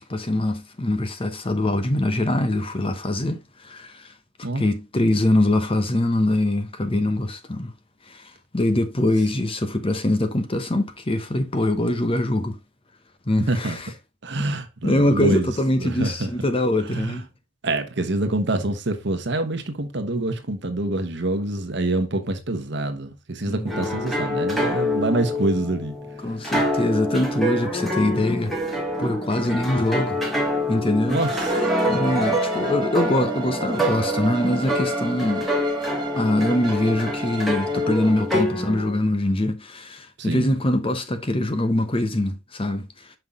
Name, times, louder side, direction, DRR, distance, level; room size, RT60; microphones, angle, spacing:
voice 1, 0.0-4.1 4.5-7.7 8.1-12.6 13.3-13.9 14.8-17.3 23.5-24.0 26.2-28.6 29.0-30.2 30.7-31.2 31.9-35.5 36.1-43.2, left 1 dB, 25° left, 0.9 m, -23 dB
voice 2, 14.2-15.5 15.8-16.3 16.9-17.1 17.6-25.9 31.1-31.3 40.2-40.5, right 2 dB, 60° right, 1.2 m, -26 dB
sound 1, 23.7-38.9, equal, ahead, 1.6 m, -26 dB
Bowed string instrument, 31.1-38.3, right 1 dB, 25° right, 0.8 m, -34 dB
5.6 x 5.6 x 3.6 m
head